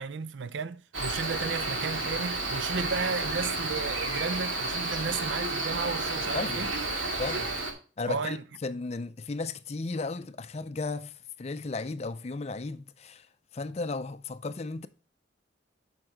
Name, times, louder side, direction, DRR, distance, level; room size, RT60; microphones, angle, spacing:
voice 1, 0.0-6.7 8.1-8.4, right 5 dB, 70° right, 0.5 m, -34 dB
Cricket, 0.9-7.7, right 2 dB, 90° right, 2.1 m, -31 dB
voice 2, 6.3-6.7 7.2-7.5 8.0-13.3 13.5-14.9, left 3 dB, 35° left, 0.4 m, -35 dB
7.7 x 5.8 x 3.8 m
head